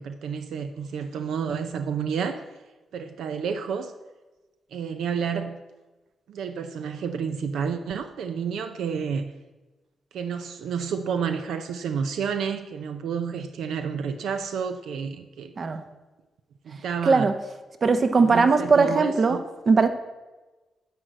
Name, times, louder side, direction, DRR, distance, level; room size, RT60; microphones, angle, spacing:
voice 1, 0.0-2.4 2.9-3.9 4.7-5.6 6.3-9.3 10.1-15.5 16.6-17.3 18.1-19.4, right 6 dB, 85° right, 8 dB, 0.5 m, -30 dB
voice 2, 17.0-17.3 17.8-19.9, right 4 dB, 45° right, 9 dB, 0.9 m, -20 dB
10.0 x 4.9 x 7.8 m, 1.2 s
cardioid pair, 95°, 0 cm